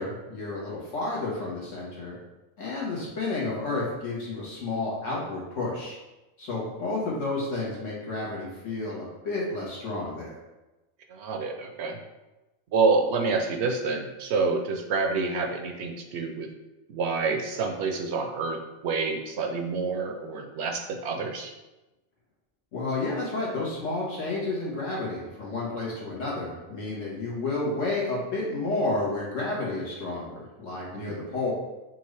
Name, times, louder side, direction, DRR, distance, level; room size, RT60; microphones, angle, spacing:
voice 1, 0.0-2.2 2.6-6.0 6.4-10.3 22.7-31.5, left 2 dB, 80° left, -5 dB, 1.7 m, -31 dB
voice 2, 11.1-12.0 12.7-16.5 16.9-21.5 30.9-31.2, right 4 dB, 70° right, 4 dB, 0.8 m, -28 dB
5.7 x 2.5 x 3.2 m, 1.0 s
omnidirectional pair, 1.3 m